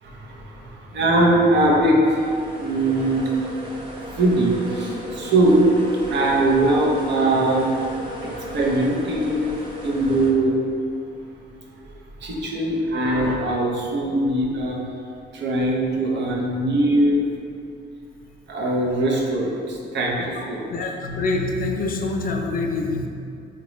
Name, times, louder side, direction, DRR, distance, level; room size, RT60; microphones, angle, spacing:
voice 1, 0.0-2.3 2.6-3.4 4.2-5.7 6.1-7.7 8.2-9.5 9.8-10.6 12.2-14.8 15.3-17.3 18.5-20.7, right 1 dB, 65° right, -2 dB, 0.7 m, -21 dB
sound 1, 2.0-10.3, right 1 dB, 25° right, 0.7 m, -35 dB
voice 2, 20.7-23.1, left 3 dB, 45° left, 2 dB, 0.4 m, -25 dB
3.9 x 2.2 x 3.0 m, 2.5 s
cardioid pair, 90°, 20 cm